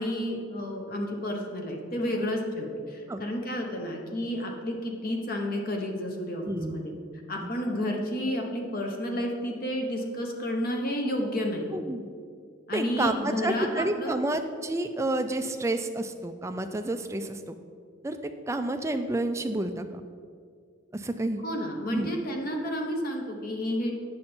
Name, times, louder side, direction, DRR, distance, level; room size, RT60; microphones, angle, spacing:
voice 1, 0.0-6.9 7.3-11.7 12.7-14.2 21.4-23.9, left 1 dB, 45° left, 2 dB, 1.0 m, -31 dB
voice 2, 6.5-6.8 7.4-7.5 11.7-12.1 12.7-17.5 18.0-20.0 20.9-21.4 21.9-22.1, right 2 dB, 15° right, 7 dB, 0.4 m, -30 dB
8.8 x 6.4 x 4.4 m, 2.2 s
head